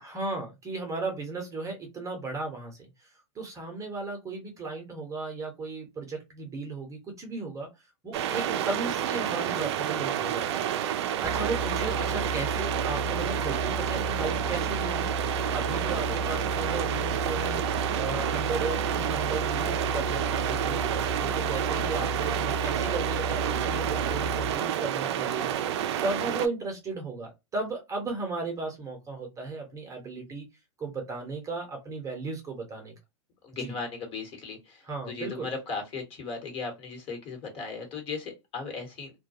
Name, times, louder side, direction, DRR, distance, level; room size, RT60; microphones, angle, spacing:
voice 1, 0.0-3.1 3.3-10.6 10.9-17.6 17.9-30.5 30.8-32.9 33.5-33.8 34.8-35.5, right 3 dB, 20° right, 2 dB, 0.8 m, -35 dB
sound 1, 8.1-26.5, right 10 dB, 60° right, 0.4 m, -29 dB
sound 2, 11.2-24.5, right 1 dB, ahead, 0.5 m, -34 dB
voice 2, 15.9-16.2 33.4-39.1, left 4 dB, 35° left, 4 dB, 1.2 m, -37 dB
2.2 x 2.2 x 2.7 m, 0.23 s
hypercardioid pair, 115°, 16 cm